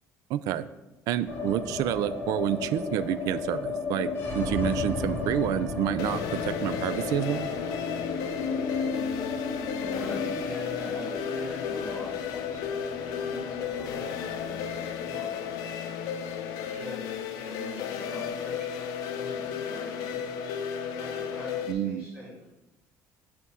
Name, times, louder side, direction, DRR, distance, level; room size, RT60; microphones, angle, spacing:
voice 1, 0.3-0.7 1.1-4.1 4.3-7.5 21.7-22.1, right 11 dB, 70° right, 14 dB, 0.4 m, -28 dB
sound 1, 1.3-17.4 17.6-17.7 18.0-18.7, left 4 dB, 35° left, 1.4 m, -34 dB
sound 2, 4.5-18.3, left 2 dB, 10° left, 1.2 m, -45 dB
sound 3, 6.0-21.7, left 8 dB, 85° left, 0.7 m, -34 dB
voice 2, 9.8-15.5 16.5-18.7 19.0-22.3, left 1 dB, 15° right, -8 dB, 2.7 m, -43 dB
8.4 x 3.6 x 5.6 m, 1.0 s
cardioid pair, 165°, 6 cm